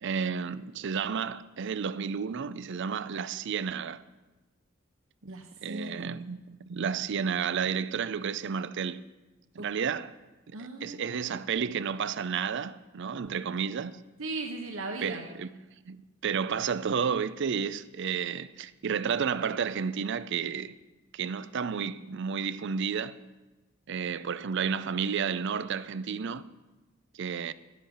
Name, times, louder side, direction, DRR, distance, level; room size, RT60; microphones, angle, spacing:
voice 1, 0.0-4.0 5.6-9.0 9.5-10.1 10.5-14.0 15.0-15.5 15.9-20.8 21.1-23.2 23.9-26.4 27.1-27.5, right 6 dB, 65° right, 0.5 m, -31 dB
voice 2, 5.2-6.1 9.6-9.7 10.5-11.2 14.2-15.2, right 2 dB, 85° right, 1.1 m, -37 dB
12.0 x 10.5 x 5.5 m
head